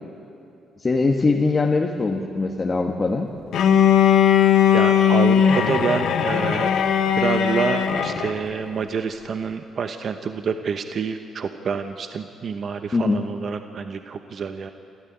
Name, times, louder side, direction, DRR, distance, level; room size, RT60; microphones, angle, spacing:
voice 1, 0.8-3.3 12.9-13.2, left 3 dB, 30° left, 1 dB, 1.5 m, -21 dB
Bowed string instrument, 3.5-8.4, left 8 dB, 75° left, 1.4 m, -18 dB
voice 2, 4.7-6.7 7.2-14.7, right 6 dB, 55° right, 7 dB, 0.9 m, -27 dB
27.0 x 14.0 x 9.0 m, 2.8 s
cardioid pair, 90°, 0 cm